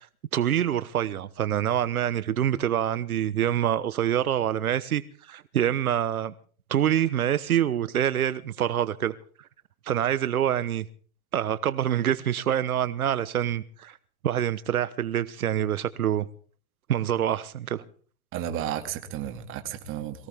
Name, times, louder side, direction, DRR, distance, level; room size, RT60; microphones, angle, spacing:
voice 1, 0.3-6.3 6.7-9.1 9.8-10.9 11.3-14.0 14.2-16.3 16.9-17.8, right 10 dB, 85° right, 1.3 m, -26 dB
voice 2, 18.3-20.3, right 10 dB, 30° right, 2.5 m, -33 dB
23.0 x 17.0 x 3.6 m
hypercardioid pair, 135°, 42 cm